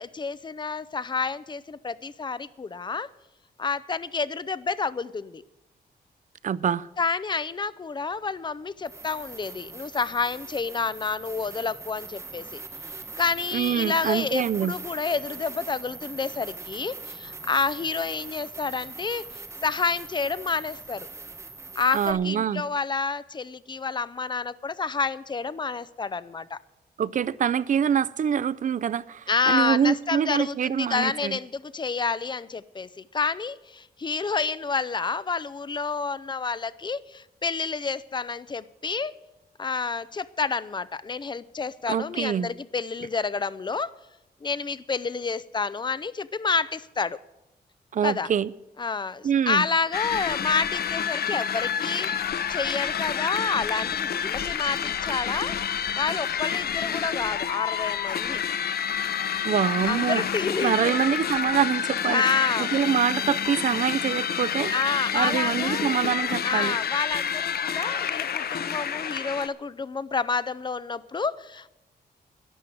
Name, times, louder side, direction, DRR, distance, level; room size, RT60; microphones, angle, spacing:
voice 1, 0.0-3.1 3.6-5.4 7.0-12.6 13.2-21.1 21.8-26.6 29.3-39.1 39.6-43.9 44.4-47.2 48.0-48.3 48.8-55.6 56.0-58.4 59.9-61.0 62.0-63.0 64.7-65.9 66.4-71.7, left 4 dB, 25° left, 0.5 m, -29 dB
voice 2, 6.4-6.9 13.5-14.7 21.9-22.6 27.0-31.4 41.9-42.5 47.9-48.5 49.2-49.6 59.4-60.2 60.6-62.2 62.6-64.7 65.1-66.8, right 8 dB, 50° right, 0.4 m, -25 dB
sound 1, 8.1-8.2 8.8-22.1, right 3 dB, 15° right, 1.1 m, -41 dB
sound 2, 49.9-69.5, left 8 dB, 65° left, 0.7 m, -29 dB
12.0 x 11.0 x 7.7 m
wide cardioid pair, 145°, 17 cm